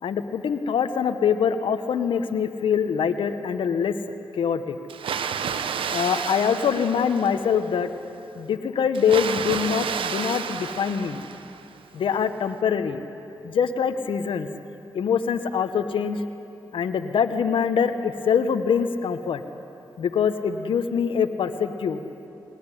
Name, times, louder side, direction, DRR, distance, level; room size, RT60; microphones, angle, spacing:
voice 1, 0.0-3.9 4.3-4.8 5.9-7.9 8.3-11.2 11.9-13.0 13.4-14.5 14.9-16.2 16.7-19.4 20.0-22.0, left 7 dB, 75° left, 8 dB, 1.1 m, -24 dB
Water, 4.9-7.7 8.9-11.8, right 7 dB, 75° right, 1.0 m, -31 dB
20.0 x 20.0 x 10.0 m, 2.9 s
supercardioid pair, 45°, 9 cm